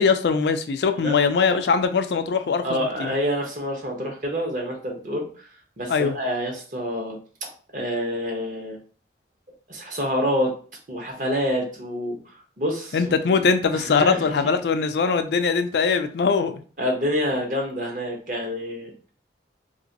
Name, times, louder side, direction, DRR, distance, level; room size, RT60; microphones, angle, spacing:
voice 1, 0.0-3.1 5.9-6.1 12.9-16.6, left 5 dB, 70° left, 0.4 m, -21 dB
voice 2, 2.6-5.4 5.8-8.8 9.7-10.5 10.9-12.2 12.6-13.2 13.7-14.3 16.8-19.1, equal, 45° right, 0.9 m, -27 dB
3.0 x 2.9 x 2.8 m
head